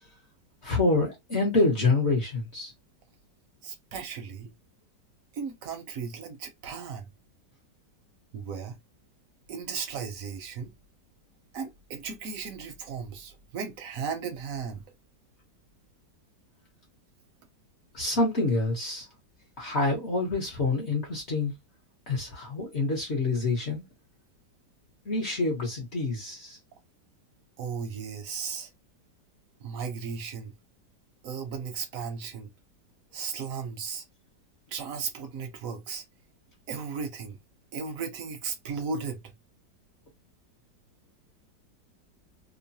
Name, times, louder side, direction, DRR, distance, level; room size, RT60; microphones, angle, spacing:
voice 1, 0.6-2.7 17.9-19.1 19.6-21.5 22.1-23.8 25.1-26.6, left 3 dB, 50° left, 0.9 m, -27 dB
voice 2, 3.6-4.5 5.3-7.1 8.3-8.8 9.5-10.7 11.5-14.8 27.6-28.7 29.6-30.5 31.2-32.5 33.1-34.0 34.7-36.0 36.7-37.4 37.7-39.3, right 6 dB, 65° right, 0.8 m, -36 dB
3.0 x 2.1 x 2.6 m
omnidirectional pair, 1.9 m